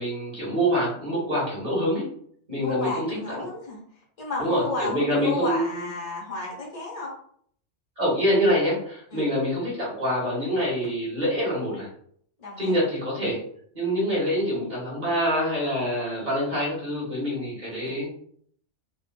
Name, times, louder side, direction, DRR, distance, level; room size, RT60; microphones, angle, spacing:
voice 1, 0.0-2.0 2.5-3.1 4.4-5.8 8.0-11.9 12.6-13.4 13.7-18.1, equal, 35° right, -6 dB, 1.6 m, -25 dB
voice 2, 2.5-3.8 4.2-7.1 9.1-9.3 12.4-12.8, left 2 dB, 35° left, -4 dB, 1.0 m, -32 dB
3.7 x 2.4 x 2.2 m, 0.62 s
omnidirectional pair, 1.3 m